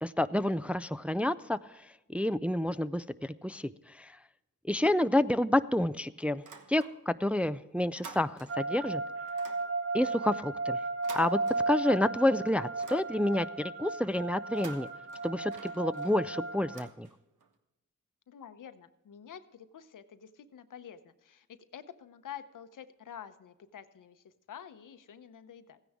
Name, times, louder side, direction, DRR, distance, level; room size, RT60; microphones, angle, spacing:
voice 1, 0.0-1.6 2.1-4.2 4.7-6.4 6.7-9.0 9.9-10.8 11.1-11.4 11.7-14.9 15.2-17.1, left 1 dB, 5° right, 12 dB, 0.3 m, -29 dB
sound 1, 6.3-7.3 7.6-8.8 9.3-12.1 12.5-13.6 14.4-17.5, right 5 dB, 75° right, 1.2 m, -51 dB
sound 2, 8.5-16.9, right 3 dB, 50° right, 0.8 m, -35 dB
voice 2, 18.3-25.8, left 9 dB, 80° left, 11 dB, 0.9 m, -48 dB
15.0 x 9.9 x 3.6 m, 0.96 s
cardioid pair, 70°, 31 cm